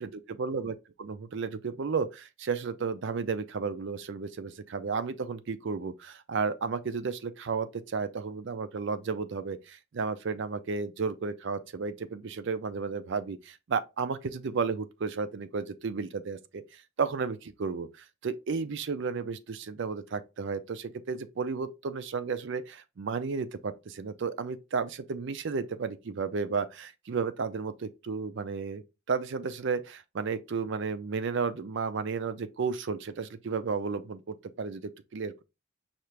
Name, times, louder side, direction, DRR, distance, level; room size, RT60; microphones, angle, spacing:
voice 1, 0.4-35.4, right 5 dB, 55° right, 0.4 m, -33 dB
5.6 x 2.5 x 3.2 m
head